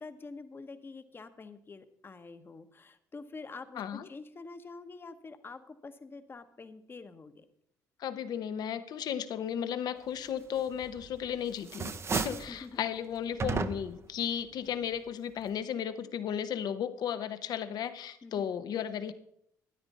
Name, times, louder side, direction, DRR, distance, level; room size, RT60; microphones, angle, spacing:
voice 1, 0.0-7.5 12.5-12.9 18.2-18.5, left 3 dB, 30° left, 10 dB, 1.0 m, -47 dB
voice 2, 3.8-4.1 8.0-19.1, left 9 dB, 65° left, 12 dB, 0.8 m, -35 dB
sound 1, 10.8-11.3 11.6-12.6 13.4-14.1, right 5 dB, 35° right, 0.7 m, -33 dB
12.5 x 9.8 x 4.1 m, 0.71 s
supercardioid pair, 75°, 7 cm